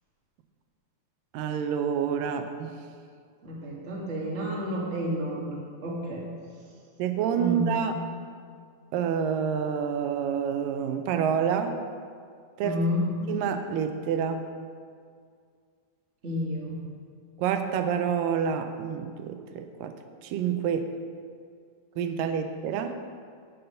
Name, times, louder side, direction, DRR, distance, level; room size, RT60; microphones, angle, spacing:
voice 1, 1.3-2.7 7.0-7.9 8.9-11.8 12.6-12.8 13.3-14.4 17.4-19.9 20.2-20.9 22.0-22.9, right 7 dB, 85° right, 7 dB, 2.3 m, -28 dB
voice 2, 3.4-6.2 7.4-7.8 12.6-13.2 16.2-16.9, equal, 30° right, -3 dB, 1.4 m, -30 dB
9.5 x 8.3 x 5.6 m, 2.1 s
omnidirectional pair, 3.9 m